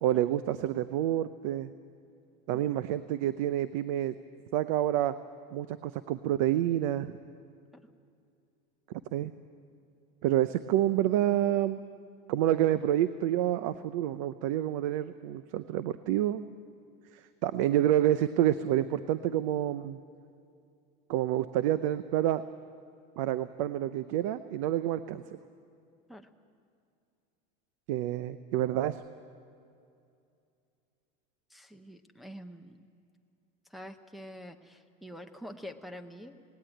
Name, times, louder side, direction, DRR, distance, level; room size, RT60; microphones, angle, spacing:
voice 1, 0.0-1.7 2.5-4.1 4.5-5.1 5.5-7.1 9.1-9.3 10.2-11.8 12.3-16.4 17.4-20.0 21.1-22.4 23.2-25.2 27.9-29.0, right 12 dB, 60° right, 13 dB, 0.6 m, -28 dB
voice 2, 31.5-32.9 33.7-36.4, equal, ahead, 3 dB, 0.6 m, -46 dB
18.5 x 17.5 x 9.0 m, 2.5 s
supercardioid pair, 175°, 19 cm